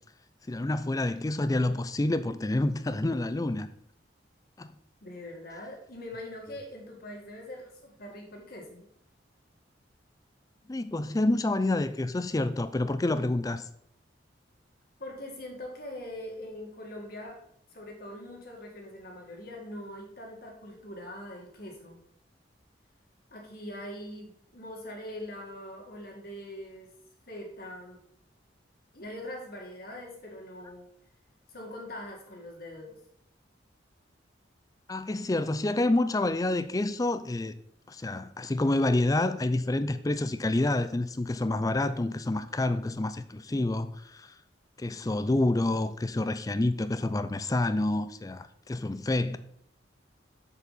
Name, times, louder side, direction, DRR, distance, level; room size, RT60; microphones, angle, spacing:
voice 1, 0.5-3.7 4.6-4.7 10.7-13.6 34.9-37.5 37.9-44.3 44.8-49.4, left 2 dB, 20° left, 0.4 m, -28 dB
voice 2, 5.0-8.8 15.0-17.4 17.7-22.0 23.3-26.9 27.3-28.0 28.9-30.9 31.5-32.9, left 1 dB, 55° left, 2.1 m, -42 dB
7.0 x 6.9 x 4.1 m
head